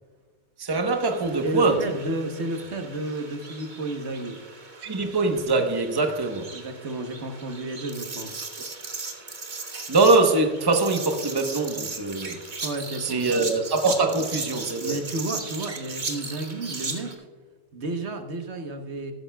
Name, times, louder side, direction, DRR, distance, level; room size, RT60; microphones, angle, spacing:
voice 1, 0.6-1.8 4.8-6.5 9.9-12.4 13.0-15.0, right 3 dB, 20° right, 1.0 m, -23 dB
sound 1, 0.9-17.1, right 3 dB, 40° right, 1.4 m, -37 dB
voice 2, 1.4-4.4 6.5-8.4 12.6-13.5 14.8-17.3 17.7-19.1, right 2 dB, 70° right, 1.4 m, -32 dB
14.5 x 13.5 x 2.3 m
omnidirectional pair, 1.2 m